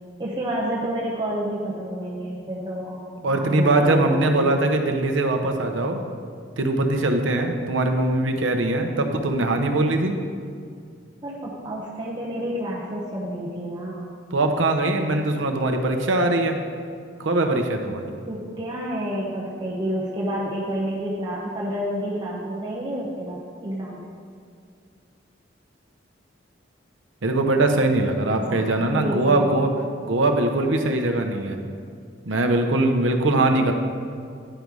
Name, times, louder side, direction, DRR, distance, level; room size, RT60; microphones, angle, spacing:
voice 1, 0.2-3.0 3.3-4.5 11.2-14.1 18.3-24.0 28.3-29.7, right 1 dB, 25° right, -5 dB, 1.0 m, -29 dB
voice 2, 3.2-6.0 6.6-10.1 14.3-16.6 17.2-18.0 27.2-29.7 30.0-31.6 32.3-33.7, right 2 dB, 70° right, 4 dB, 0.8 m, -21 dB
10.0 x 5.3 x 4.7 m, 2.2 s
head